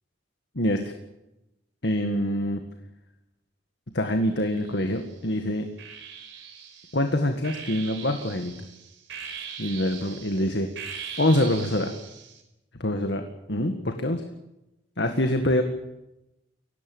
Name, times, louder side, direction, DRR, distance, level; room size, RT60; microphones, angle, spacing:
voice 1, 0.6-0.9 1.8-2.6 3.9-5.7 6.9-8.5 9.6-10.7 11.2-11.9 12.8-14.2 15.0-15.6, left 1 dB, 65° left, 6 dB, 2.0 m, -25 dB
sound 1, 4.4-5.1 5.8-12.4, right 7 dB, 90° right, 4.8 m, -41 dB
23.5 x 18.0 x 9.0 m, 0.92 s
head